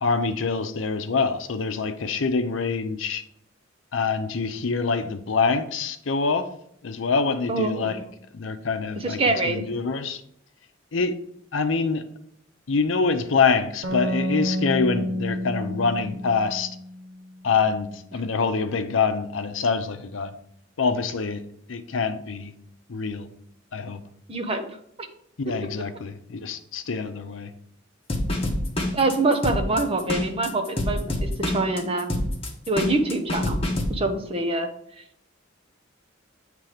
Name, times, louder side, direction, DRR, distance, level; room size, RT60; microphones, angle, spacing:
voice 1, 0.0-3.2 3.9-6.5 6.8-8.0 8.3-9.2 9.5-10.2 10.9-11.2 11.5-12.0 12.7-16.7 17.4-20.3 20.8-21.4 21.7-22.5 22.9-23.3 23.7-24.0 25.4-27.5, left 4 dB, 80° left, 0.6 m, -25 dB
voice 2, 7.5-8.1 9.0-9.6 24.3-24.7 28.9-32.2 32.7-33.6 33.9-34.7, right 2 dB, 30° right, 0.9 m, -25 dB
sound 1, 13.8-17.3, equal, 80° right, 1.0 m, -29 dB
sound 2, 28.1-33.9, left 1 dB, 30° left, 1.1 m, -26 dB
8.9 x 3.4 x 4.9 m
head